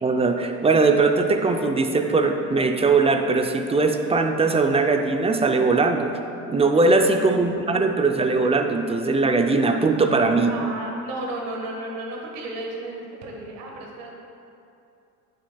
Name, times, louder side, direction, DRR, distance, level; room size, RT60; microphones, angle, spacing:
voice 1, 0.0-6.2 6.5-10.5, right 3 dB, 15° right, 5 dB, 0.5 m, -20 dB
voice 2, 7.2-8.2 10.5-14.1, right 2 dB, 70° right, 0 dB, 1.5 m, -34 dB
9.4 x 6.5 x 2.3 m, 2.7 s
supercardioid pair, 85°, 36 cm